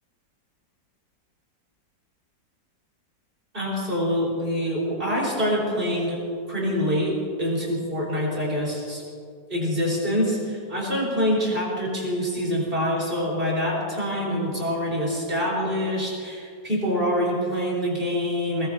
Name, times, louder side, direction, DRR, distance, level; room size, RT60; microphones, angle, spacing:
voice 1, 3.5-6.2 6.5-9.0 9.5-18.7, equal, 30° right, -4 dB, 5.3 m, -25 dB
21.5 x 21.0 x 3.0 m, 2.3 s
omnidirectional pair, 1.9 m